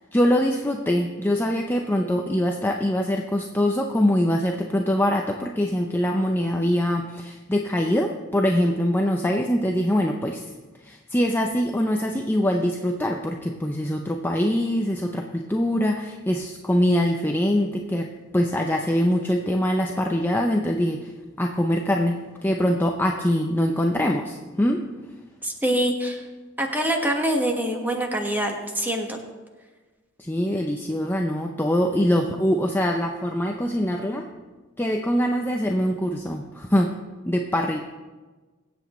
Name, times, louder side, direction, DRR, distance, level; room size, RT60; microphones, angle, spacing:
voice 1, 0.1-10.5 10.8-18.1 18.3-21.1 21.4-24.8 30.2-34.3 34.8-36.9 37.2-37.8, equal, 10° left, 2 dB, 0.6 m, -23 dB
voice 2, 25.4-26.2 26.6-29.2, right 1 dB, 10° right, 2 dB, 1.4 m, -25 dB
24.0 x 8.0 x 3.1 m, 1.3 s
head